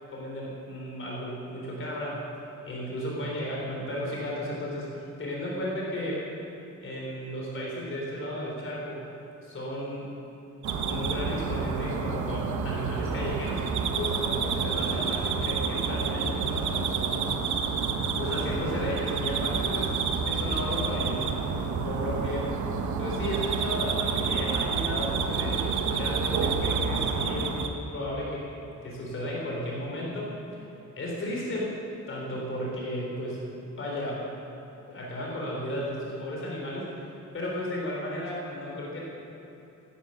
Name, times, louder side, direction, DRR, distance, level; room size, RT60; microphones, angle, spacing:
voice 1, 0.1-2.2 2.7-6.2 6.8-9.0 9.4-10.1 10.9-17.3 18.1-19.9 20.3-22.5 23.0-28.4 28.8-30.3 31.0-31.7 32.1-33.4 33.8-34.2 34.9-36.9 37.3-39.0, equal, 45° left, -3 dB, 3.8 m, -34 dB
sound 1, 10.6-27.7, right 5 dB, 75° right, 1.3 m, -29 dB
17.5 x 11.5 x 6.6 m, 3.0 s
wide cardioid pair, 170°, 29 cm